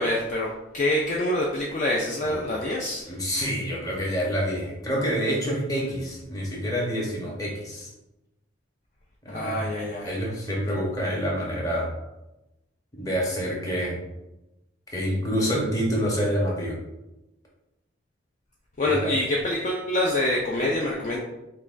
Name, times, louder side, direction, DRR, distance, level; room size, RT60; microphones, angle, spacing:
voice 1, 0.0-3.0 9.3-10.2 18.8-21.2, left 1 dB, 40° left, -3 dB, 0.4 m, -26 dB
voice 2, 3.1-7.9 9.2-9.7 10.0-11.9 12.9-14.0 14.9-16.8 18.9-19.1, equal, 20° left, -3 dB, 0.8 m, -27 dB
5.5 x 2.2 x 2.5 m, 0.95 s
head